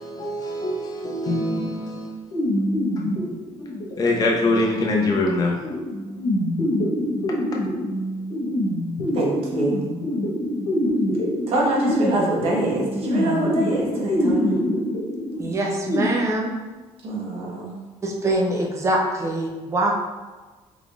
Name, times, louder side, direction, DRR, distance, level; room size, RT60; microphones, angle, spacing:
voice 1, 0.0-2.2 4.0-5.6 7.5-7.6, left 2 dB, 35° left, 0.7 m, -23 dB
sound 1, 2.3-16.0, left 1 dB, 85° left, 1.2 m, -25 dB
voice 2, 9.1-9.8 11.5-14.6 17.0-17.9, right 1 dB, 55° right, 1.1 m, -25 dB
voice 3, 15.4-16.5 18.0-19.9, right 1 dB, 25° right, 0.7 m, -24 dB
3.6 x 3.6 x 2.4 m
cardioid pair, 125°, 11 cm